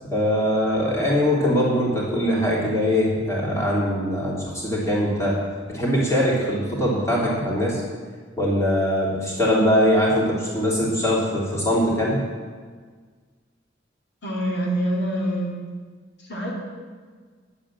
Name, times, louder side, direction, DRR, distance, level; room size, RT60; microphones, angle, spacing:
voice 1, 0.1-5.4 5.7-7.8 8.4-12.2, equal, 15° left, -5 dB, 3.1 m, -22 dB
voice 2, 14.2-15.5 16.2-16.6, equal, 60° left, -3 dB, 2.4 m, -25 dB
10.5 x 8.1 x 7.4 m, 1.5 s
head